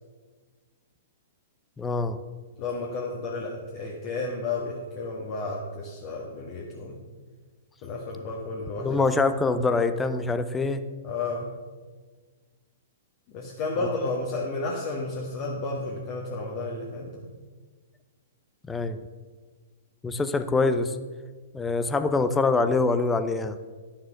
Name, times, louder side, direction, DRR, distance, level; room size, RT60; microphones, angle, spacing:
voice 1, 1.8-2.2 8.8-10.8 13.8-13.9 18.7-19.0 20.0-21.0 21.5-23.6, left 3 dB, 10° left, 10 dB, 0.7 m, -24 dB
voice 2, 2.6-7.0 7.8-9.0 11.0-11.5 13.3-17.2, left 3 dB, 40° left, -2 dB, 1.7 m, -32 dB
12.0 x 7.3 x 6.2 m, 1.4 s
figure-of-eight pair, 110°, 0 cm